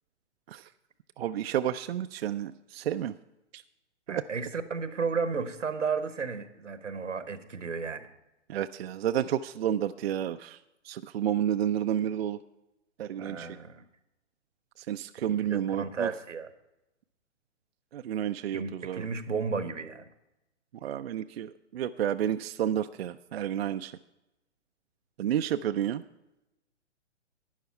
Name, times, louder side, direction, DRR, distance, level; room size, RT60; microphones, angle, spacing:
voice 1, 1.2-3.1 3.5-3.6 4.1-4.2 8.5-10.6 10.9-12.4 13.0-13.5 14.8-16.1 17.9-19.0 20.8-24.0 25.2-26.0, right 10 dB, 55° right, 10 dB, 0.4 m, -30 dB
voice 2, 4.1-8.1 13.2-13.9 15.3-16.5 18.5-20.0, right 5 dB, 85° right, 12 dB, 1.1 m, -33 dB
12.0 x 9.4 x 4.4 m, 0.95 s
figure-of-eight pair, 125°, 36 cm